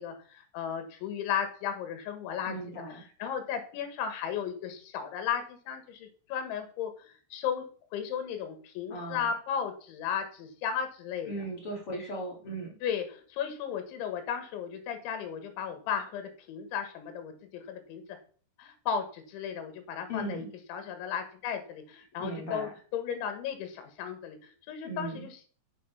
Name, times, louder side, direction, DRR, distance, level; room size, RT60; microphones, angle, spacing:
voice 1, 0.0-7.6 7.9-11.4 12.8-18.0 18.6-20.4 20.7-25.4, left 7 dB, 85° left, 7 dB, 3.9 m, -35 dB
voice 2, 2.5-3.0 8.9-9.3 11.2-12.8 20.1-20.5 22.2-22.7 24.8-25.3, right 1 dB, 40° left, 0 dB, 2.3 m, -37 dB
8.6 x 8.4 x 5.7 m, 0.43 s
omnidirectional pair, 5.3 m